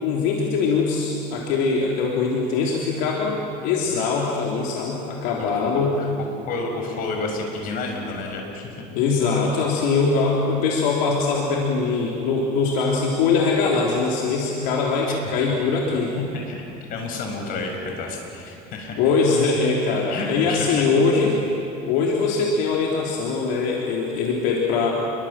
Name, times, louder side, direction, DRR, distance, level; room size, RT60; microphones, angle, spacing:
voice 1, 0.0-5.9 8.9-16.1 19.0-21.4 21.9-24.9, left 4 dB, 80° left, -2 dB, 3.5 m, -22 dB
voice 2, 6.5-8.7 16.5-19.0 20.1-20.8, left 3 dB, 55° left, 2 dB, 6.3 m, -30 dB
28.5 x 23.5 x 7.6 m, 2.7 s
cardioid pair, 140°, 17 cm